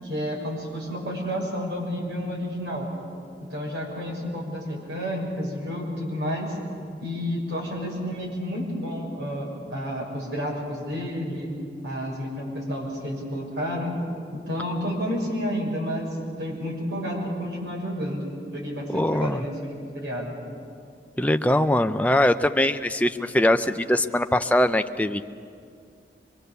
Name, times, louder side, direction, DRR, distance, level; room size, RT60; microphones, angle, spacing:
voice 1, 0.0-2.9 3.5-6.6 7.0-11.5 11.8-14.0 14.3-18.3 18.5-20.3, equal, 85° right, -2 dB, 6.7 m, -30 dB
voice 2, 18.9-19.4 21.2-25.3, left 1 dB, 10° left, 8 dB, 0.5 m, -22 dB
25.0 x 22.5 x 6.8 m, 2.3 s
head